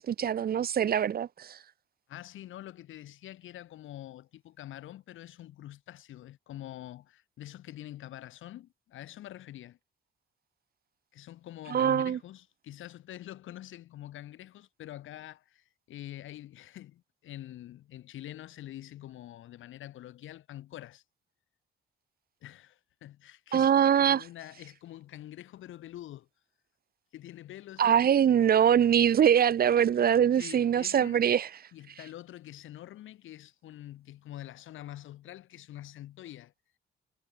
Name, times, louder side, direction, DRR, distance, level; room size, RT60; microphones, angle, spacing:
voice 1, 0.0-1.6 11.7-12.2 23.5-24.2 27.8-31.5, right 9 dB, 50° right, 0.8 m, -23 dB
voice 2, 2.1-9.8 11.1-21.0 22.4-26.3 27.1-27.9 30.4-31.2 31.7-36.5, left 13 dB, 80° left, 6.0 m, -46 dB
cardioid pair, 90°, 20 cm